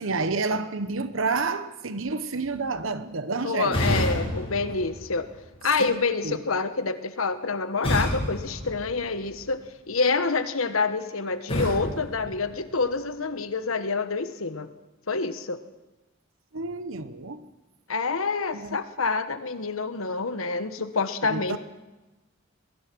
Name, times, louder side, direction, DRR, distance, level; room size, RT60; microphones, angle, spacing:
voice 1, 0.0-4.0 5.8-6.0 6.2-6.4 16.5-17.4 18.5-18.8 21.2-21.6, right 3 dB, 70° right, 1.0 m, -29 dB
voice 2, 3.4-5.3 5.6-14.7 15.1-15.6 17.9-21.6, left 4 dB, 85° left, 1.3 m, -27 dB
sound 1, 3.7-5.7 7.8-9.5 11.5-13.1, equal, 25° left, 8.0 m, -30 dB
22.5 x 19.5 x 6.2 m
head